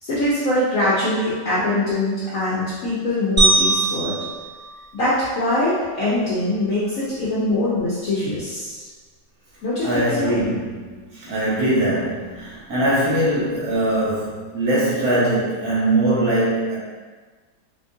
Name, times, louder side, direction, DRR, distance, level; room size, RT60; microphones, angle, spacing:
voice 1, 0.0-4.2 4.9-8.9 9.6-10.4, left 1 dB, 60° left, -9 dB, 1.0 m, -23 dB
sound 1, 3.4-5.7, right 2 dB, 20° right, 0.5 m, -22 dB
voice 2, 9.8-16.8, right 1 dB, 60° right, -8 dB, 1.4 m, -21 dB
4.3 x 2.4 x 2.6 m, 1.4 s
omnidirectional pair, 1.9 m